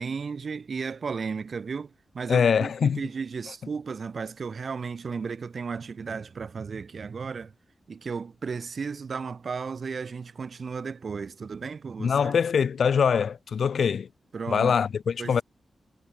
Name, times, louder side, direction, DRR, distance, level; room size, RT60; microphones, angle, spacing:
voice 1, 0.0-7.5 7.9-12.3 14.3-14.8 15.2-15.4, right 5 dB, 50° right, 6.4 m, -34 dB
voice 2, 2.3-3.0 12.0-14.1 14.5-15.4, left 6 dB, 70° left, 2.5 m, -23 dB
wide cardioid pair, 160°, 0 cm